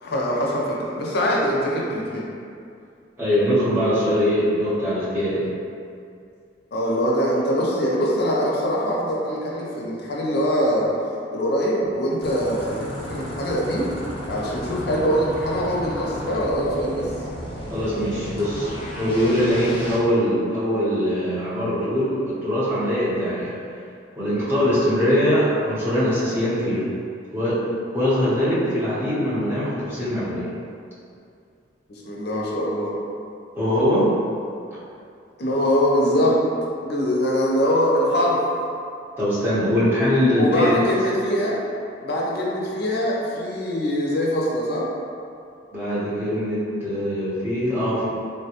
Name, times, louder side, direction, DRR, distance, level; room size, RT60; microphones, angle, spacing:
voice 1, 0.0-2.3 6.7-10.9 11.3-13.9 14.3-17.1 31.9-32.9 35.4-36.4 36.8-38.4 40.4-41.6 42.0-44.9, equal, 60° left, -3 dB, 0.5 m, -23 dB
voice 2, 3.2-5.5 17.7-23.6 24.2-26.9 27.3-27.6 27.9-30.5 33.6-34.1 39.2-40.8 45.7-48.1, equal, 10° right, -12 dB, 0.9 m, -22 dB
sound 1, 12.2-20.0, equal, 30° left, 0.9 m, -33 dB
3.4 x 2.2 x 2.8 m, 2.4 s
head